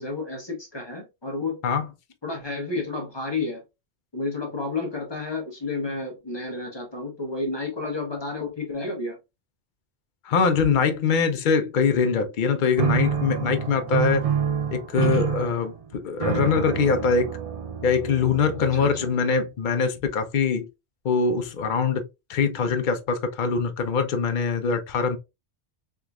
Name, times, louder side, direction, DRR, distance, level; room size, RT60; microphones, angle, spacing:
voice 1, 0.0-1.6 2.2-3.6 4.1-9.2 15.1-15.3 18.7-19.1, left 3 dB, 25° left, 1.0 m, -31 dB
voice 2, 10.2-14.2 14.7-17.3 17.8-20.7 21.0-22.0 22.3-25.2, left 5 dB, 55° left, 0.7 m, -23 dB
sound 1, 12.8-19.2, right 8 dB, 60° right, 0.3 m, -28 dB
3.5 x 2.9 x 2.3 m
omnidirectional pair, 1.1 m